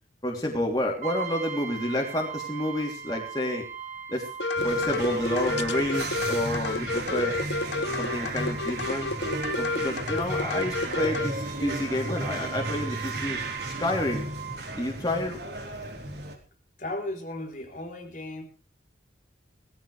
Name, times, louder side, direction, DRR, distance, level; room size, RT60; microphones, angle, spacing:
voice 1, 0.2-3.7 4.1-4.3 4.6-7.5 8.0-9.1 9.6-13.4 13.6-14.3 14.8-15.4, left 1 dB, 20° left, -1 dB, 3.2 m, -29 dB
Brass instrument, 1.0-14.6, right 7 dB, 40° right, 3.0 m, -41 dB
sound 1, 4.4-11.3, left 3 dB, 70° left, 0.9 m, -30 dB
sound 2, 4.5-16.4, right 2 dB, 60° right, 3.9 m, -34 dB
voice 2, 16.8-18.4, left 1 dB, 40° left, 4 dB, 3.8 m, -35 dB
19.5 x 15.0 x 3.4 m, 0.34 s
head